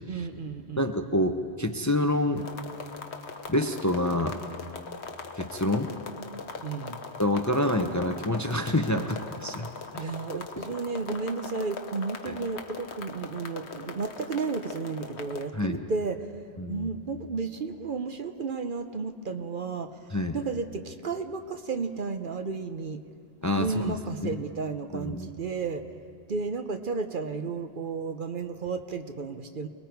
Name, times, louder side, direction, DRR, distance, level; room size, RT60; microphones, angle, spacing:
voice 1, 0.1-0.9 6.6-7.0 8.9-9.2 9.6-16.3 16.7-23.0 23.5-25.9 26.3-29.7, right 4 dB, 50° right, 7 dB, 0.9 m, -33 dB
voice 2, 0.8-2.5 3.5-4.4 5.3-5.9 7.2-9.7 9.9-10.1 12.3-12.4 15.6-15.8 16.6-16.9 20.1-20.4 23.4-23.9 24.3-24.4 24.9-25.3, left 1 dB, 20° left, 5 dB, 0.7 m, -27 dB
sound 1, 2.4-15.4, left 4 dB, 75° left, 1.3 m, -41 dB
29.0 x 20.5 x 4.6 m, 2.2 s
omnidirectional pair, 1.1 m